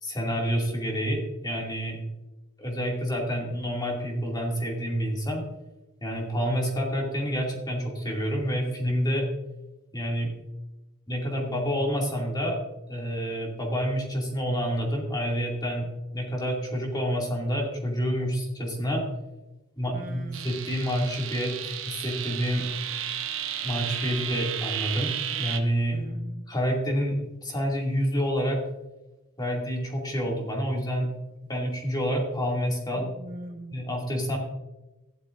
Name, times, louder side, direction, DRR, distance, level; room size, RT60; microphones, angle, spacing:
voice 1, 0.0-2.0 2.6-5.4 6.0-9.2 9.9-10.3 11.1-12.6 12.9-15.9 16.1-19.0 19.8-22.6 23.6-25.1 25.4-26.0 26.5-28.6 29.4-31.1 31.5-33.1 33.7-34.4, equal, 20° left, -1 dB, 2.4 m, -28 dB
voice 2, 19.9-20.6 25.9-26.5 32.9-33.9, right 1 dB, 40° right, 4 dB, 0.9 m, -41 dB
sound 1, 20.3-25.6, right 10 dB, 70° right, 1.0 m, -33 dB
15.0 x 11.5 x 2.6 m, 1.0 s
head